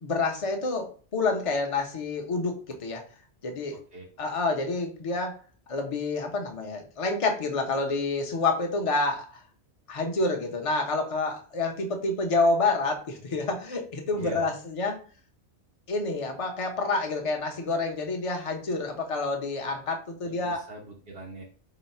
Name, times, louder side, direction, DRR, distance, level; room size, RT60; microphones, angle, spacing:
voice 1, 0.0-3.1 3.4-3.8 4.2-5.4 5.7-9.4 9.9-15.0 15.9-20.6, left 3 dB, 35° left, 3 dB, 0.6 m, -28 dB
voice 2, 3.7-4.0 14.2-14.5 20.2-21.4, right 2 dB, 65° right, -2 dB, 1.1 m, -42 dB
3.9 x 2.0 x 4.2 m, 0.39 s
omnidirectional pair, 1.2 m